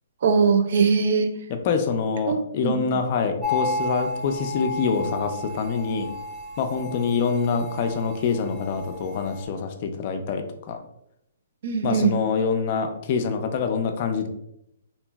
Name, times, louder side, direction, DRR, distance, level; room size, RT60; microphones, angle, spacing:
voice 1, 0.2-1.3 2.3-2.8 11.6-12.2, right 5 dB, 60° right, 7 dB, 0.4 m, -21 dB
voice 2, 1.6-6.1 6.6-10.8 11.8-14.3, left 5 dB, 40° left, 5 dB, 0.4 m, -25 dB
sound 1, 3.4-9.4, left 2 dB, 10° right, 0.7 m, -32 dB
2.9 x 2.6 x 2.2 m, 0.78 s
hypercardioid pair, 155°, 0 cm